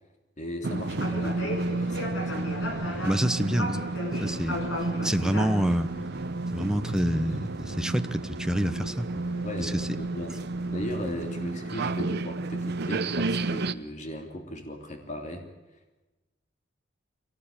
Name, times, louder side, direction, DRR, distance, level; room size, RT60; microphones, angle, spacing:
voice 1, 0.4-2.4 9.4-10.3 10.7-15.5, left 1 dB, 40° left, 4 dB, 3.2 m, -37 dB
sound 1, 0.6-13.7, right 2 dB, 55° right, 0.9 m, -31 dB
sound 2, 0.7-11.1, left 1 dB, 65° left, 4.7 m, -38 dB
voice 2, 3.0-3.8 4.2-4.6 5.0-5.9 6.5-9.2 9.6-9.9, equal, 5° right, 9 dB, 1.0 m, -27 dB
23.5 x 18.5 x 8.9 m, 1.1 s
head